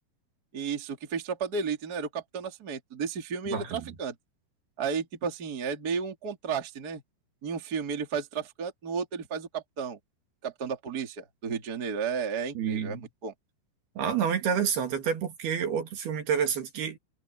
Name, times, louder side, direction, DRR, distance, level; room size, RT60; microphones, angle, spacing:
voice 1, 0.5-4.2 4.8-7.0 7.4-10.0 10.4-13.3, right 6 dB, 25° right, 2.4 m, -33 dB
voice 2, 3.5-3.8 12.6-13.1 14.0-17.0, right 7 dB, 60° right, 4.2 m, -29 dB
omnidirectional pair, 5.2 m